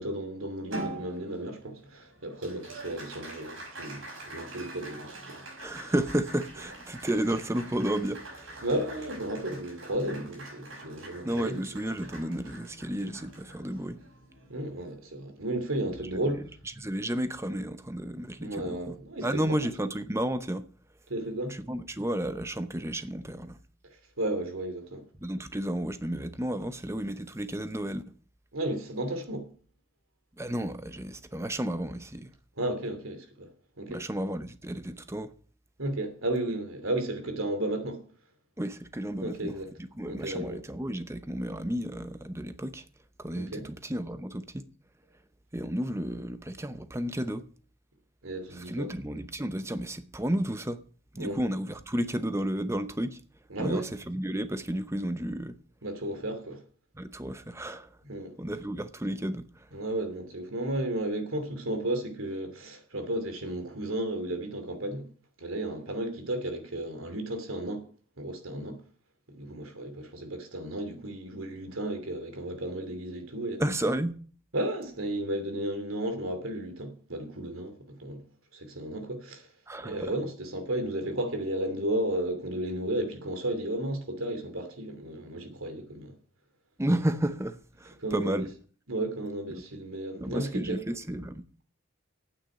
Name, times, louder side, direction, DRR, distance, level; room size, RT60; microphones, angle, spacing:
voice 1, 0.0-5.4 8.6-11.6 14.5-16.5 18.4-19.6 21.1-21.6 24.2-25.0 28.5-29.5 32.6-33.5 33.8-34.0 35.8-38.0 39.2-39.7 40.1-40.6 43.3-43.7 48.2-48.9 51.2-51.4 53.5-53.9 55.8-56.6 58.0-58.3 59.7-65.1 65.4-67.8 68.2-68.8 69.3-73.6 74.5-78.2 78.5-79.5 79.8-86.2 88.0-88.5 88.9-90.8, right 1 dB, 90° right, 2.8 m, -33 dB
Applause, 0.7-15.4, right 2 dB, 70° right, 6.0 m, -45 dB
voice 2, 5.6-8.6 11.2-14.0 16.8-19.0 19.2-20.7 21.5-23.6 25.2-28.0 30.4-32.3 33.9-35.3 38.6-39.5 39.8-42.8 43.2-44.6 45.5-47.5 48.6-50.8 51.1-53.2 53.6-55.6 57.0-57.9 58.4-59.7 73.6-74.2 79.7-80.1 86.8-88.5 89.5-89.6 90.2-91.4, right 1 dB, 15° right, 0.8 m, -32 dB
9.1 x 8.1 x 8.9 m
head